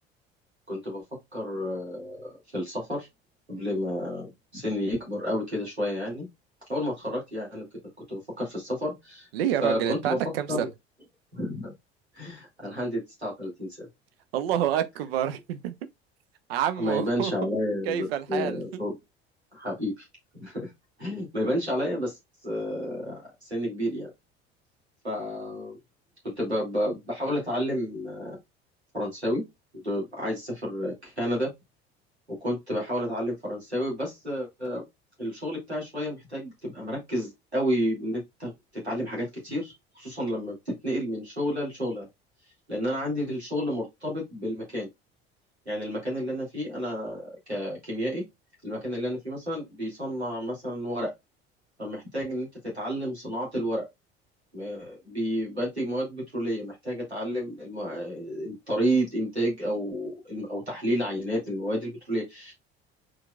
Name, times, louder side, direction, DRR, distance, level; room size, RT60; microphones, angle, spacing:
voice 1, 0.7-1.0 1.3-3.1 3.5-6.3 6.7-7.6 8.1-9.3 9.6-10.2 10.5-10.7 11.3-11.7 12.1-13.9 16.8-19.0 19.5-20.1 20.3-20.7 21.0-24.1 25.0-25.8 26.4-28.4 28.9-29.4 29.7-31.5 32.3-34.8 35.2-42.1 42.7-44.9 45.7-48.2 48.6-51.1 51.8-52.5 52.7-53.8 54.5-62.5, equal, 90° right, 2.6 m, -31 dB
voice 2, 9.3-10.7 14.3-15.7 16.5-17.3 17.9-18.6, right 10 dB, 65° right, 0.6 m, -28 dB
4.5 x 4.4 x 2.4 m
figure-of-eight pair, 60°, 32 cm